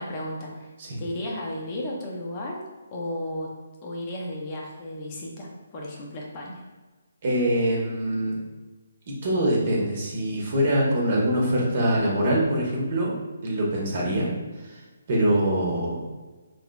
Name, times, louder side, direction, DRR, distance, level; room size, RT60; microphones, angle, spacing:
voice 1, 0.0-0.7 1.0-2.6 2.9-3.5 3.8-6.6, left 1 dB, 30° left, -2 dB, 0.6 m, -34 dB
voice 2, 7.2-8.4 9.1-13.1 13.4-14.3 14.7-14.8 15.1-16.0, right 1 dB, 45° right, -3 dB, 0.9 m, -24 dB
3.9 x 2.8 x 2.2 m, 1.3 s
figure-of-eight pair, 140°, 0 cm